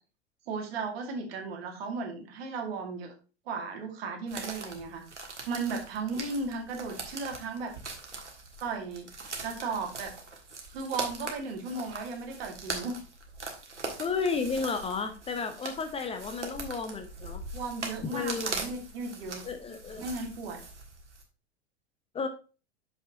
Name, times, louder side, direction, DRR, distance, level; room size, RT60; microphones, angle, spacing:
voice 1, 0.5-3.1 3.5-5.0 5.5-7.7 8.6-9.1 9.4-10.1 10.7-12.9 17.5-19.4 20.0-20.6, right 4 dB, 60° right, 2 dB, 2.2 m, -35 dB
sound 1, 4.3-21.2, right 3 dB, 80° right, 1.6 m, -41 dB
voice 2, 14.0-17.4 18.0-18.5 19.4-20.0 22.1-22.3, left 5 dB, 15° left, 7 dB, 0.7 m, -32 dB
6.5 x 5.4 x 4.0 m, 0.34 s
figure-of-eight pair, 90°, 35 cm